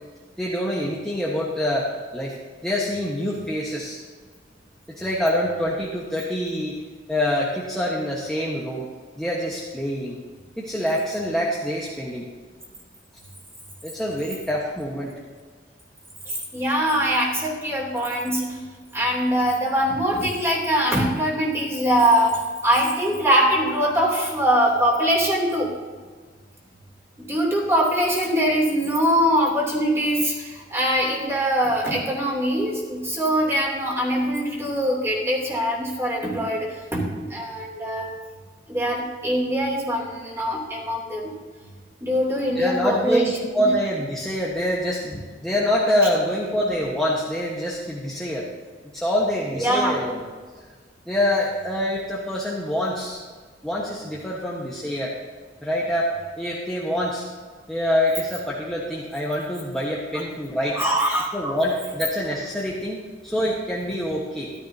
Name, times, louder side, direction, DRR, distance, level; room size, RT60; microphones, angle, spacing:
voice 1, 0.4-2.3 2.6-4.0 4.9-6.7 7.1-8.9 9.2-10.1 10.6-12.3 13.8-15.1 42.5-48.4 48.9-50.2 51.1-53.2 53.6-55.1 55.6-57.2 57.7-60.8 61.3-64.5, equal, 5° left, -5 dB, 1.3 m, -25 dB
voice 2, 16.3-18.6 18.9-25.7 27.2-38.1 38.7-41.3 42.0-43.3 49.6-50.0 60.7-61.6, equal, 15° right, -4 dB, 3.0 m, -22 dB
14.0 x 12.5 x 2.8 m, 1.5 s
head